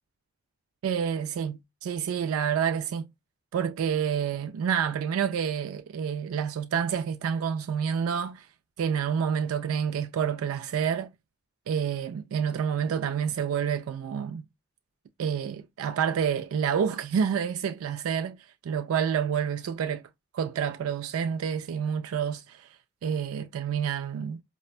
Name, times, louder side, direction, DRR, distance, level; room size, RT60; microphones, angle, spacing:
voice 1, 0.8-3.1 3.5-8.5 8.8-11.1 11.7-14.4 15.2-18.4 18.6-20.0 20.3-22.7 23.0-24.4, right 7 dB, 85° right, 0.3 m, -28 dB
4.3 x 2.0 x 2.4 m
head